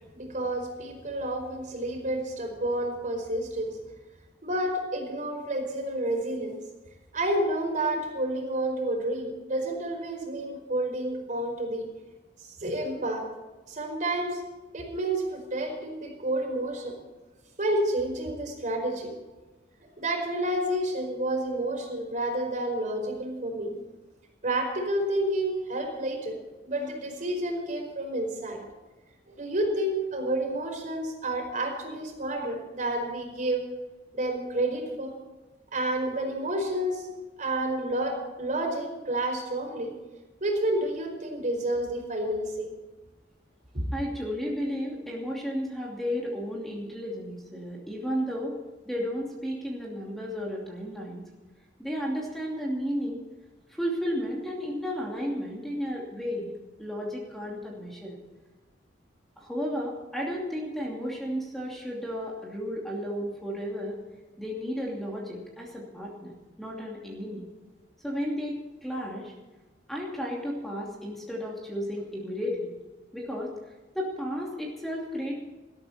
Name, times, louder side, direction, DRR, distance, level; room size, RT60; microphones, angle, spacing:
voice 1, 0.1-3.8 4.4-6.6 7.1-11.9 12.4-13.3 13.7-14.4 14.7-16.9 17.6-19.1 20.0-23.8 24.4-26.4 26.6-28.6 29.4-33.6 34.1-35.2 35.7-37.1 37.4-39.9 40.4-42.7, right 1 dB, 45° right, 2 dB, 4.8 m, -30 dB
voice 2, 43.9-48.6 48.8-51.3 51.8-53.3 53.7-56.5 56.8-58.2 59.4-64.0 64.4-67.5 68.0-69.3 69.9-72.7 73.1-75.3, equal, ahead, -3 dB, 2.7 m, -33 dB
20.0 x 13.0 x 4.3 m, 1.2 s
head